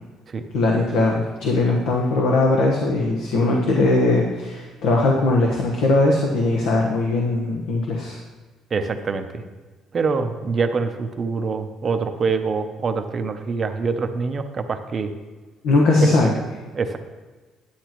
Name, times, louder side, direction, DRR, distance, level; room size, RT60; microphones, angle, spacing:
voice 1, 0.5-8.2 15.6-16.3, left 2 dB, 80° left, -1 dB, 1.1 m, -20 dB
voice 2, 8.7-9.4 9.9-15.1 16.0-16.3 16.7-17.0, right 4 dB, 30° right, 8 dB, 0.6 m, -25 dB
9.9 x 9.3 x 3.0 m, 1.3 s
cardioid pair, 160°, 0 cm